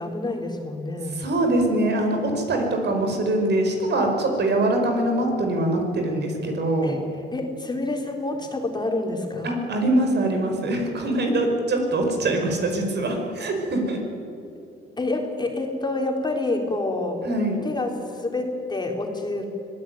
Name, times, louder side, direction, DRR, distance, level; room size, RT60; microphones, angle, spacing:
voice 1, 0.0-1.3 6.8-7.0 7.3-9.6 15.0-17.3 17.6-19.5, left 2 dB, 20° left, 1 dB, 4.0 m, -28 dB
voice 2, 1.2-7.0 9.4-14.0 17.2-17.6, right 1 dB, 60° right, 3 dB, 5.3 m, -23 dB
24.5 x 17.5 x 9.4 m, 2.8 s
cardioid pair, 90°, 20 cm